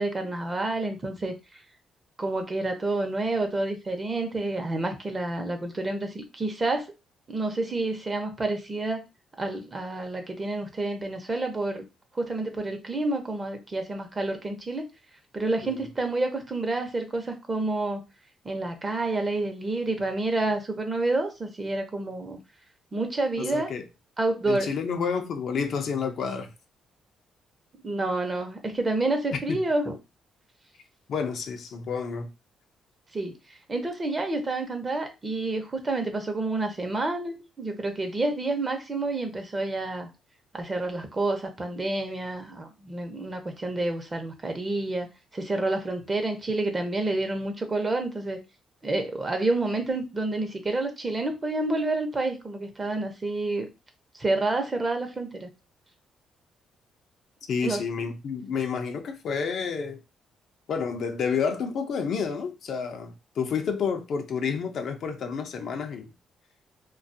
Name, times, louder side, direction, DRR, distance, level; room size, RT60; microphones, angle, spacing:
voice 1, 0.0-1.6 2.2-6.9 7.3-9.0 9.4-11.8 12.1-14.9 15.3-18.0 18.4-22.4 22.9-23.7 24.2-24.7 27.8-29.9 33.1-33.4 33.7-40.1 40.5-45.1 45.3-48.4 48.8-53.7 54.2-55.5 57.6-57.8, right 2 dB, 30° right, 0.7 m, -29 dB
voice 2, 23.4-23.8 24.5-26.5 29.5-29.6 31.1-32.3 57.5-60.0 60.7-66.1, left 6 dB, 65° left, 0.5 m, -30 dB
2.4 x 2.3 x 2.6 m
cardioid pair, 90°, 0 cm